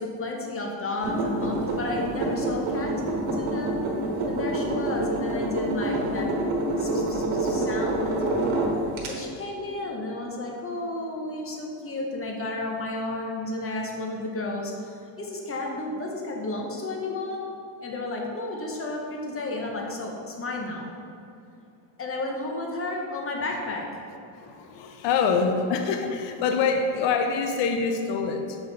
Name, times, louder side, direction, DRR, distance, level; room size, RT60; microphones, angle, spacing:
voice 1, 0.0-3.7 4.3-6.3 6.8-8.2 9.0-17.4 17.8-20.9 22.0-24.0, left 2 dB, 25° left, 0 dB, 1.0 m, -32 dB
sound 1, 1.0-9.1, right 1 dB, 65° right, 1.4 m, -27 dB
voice 2, 24.3-28.6, left 5 dB, 60° left, 5 dB, 0.7 m, -25 dB
6.9 x 4.0 x 4.1 m, 2.6 s
cardioid pair, 110°, 50 cm